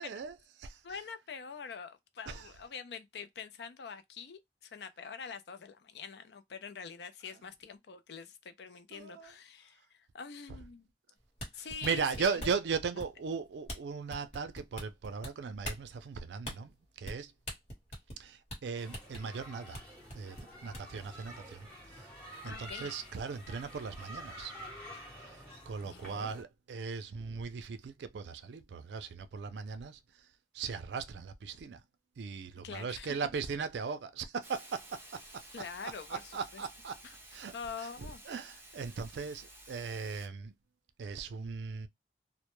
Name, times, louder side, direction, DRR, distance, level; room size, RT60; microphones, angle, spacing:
voice 1, 0.0-0.8 2.3-2.5 8.9-9.3 11.5-17.3 18.2-19.8 20.1-22.1 22.4-24.5 25.2-30.3 30.5-31.8 32.2-35.4 35.8-37.0 37.3-37.5 37.8-40.5 41.0-41.9, right 5 dB, 80° right, 0.4 m, -38 dB
voice 2, 0.8-10.9 11.5-12.5 22.4-22.9 25.8-26.3 32.6-33.2 35.5-36.2 36.5-36.6 37.0-37.1 37.5-38.4, left 6 dB, 70° left, 0.4 m, -45 dB
sound 1, 11.2-12.6 13.0-13.3 13.7-13.8 14.1-15.3 15.6-15.8 16.4-16.6 17.0-17.2 17.5-18.2 18.5-18.6 18.9-19.2 19.7-19.8 20.1-21.0, equal, 40° left, 1.1 m, -41 dB
sound 2, 18.7-26.4, equal, 5° left, 0.8 m, -49 dB
Hiss, 34.4-40.3, right 1 dB, 10° right, 0.5 m, -53 dB
2.1 x 2.0 x 2.9 m
head